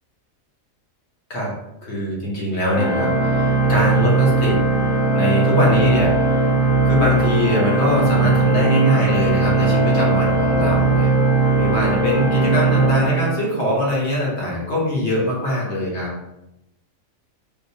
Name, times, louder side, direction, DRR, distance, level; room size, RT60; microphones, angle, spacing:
voice 1, 1.8-4.6 5.1-6.5 6.8-11.1 11.5-16.1, left 1 dB, 55° left, -4 dB, 1.2 m, -22 dB
Organ, 2.7-13.8, right 3 dB, 35° left, 0.7 m, -18 dB
3.6 x 2.6 x 2.7 m, 0.89 s
omnidirectional pair, 1.4 m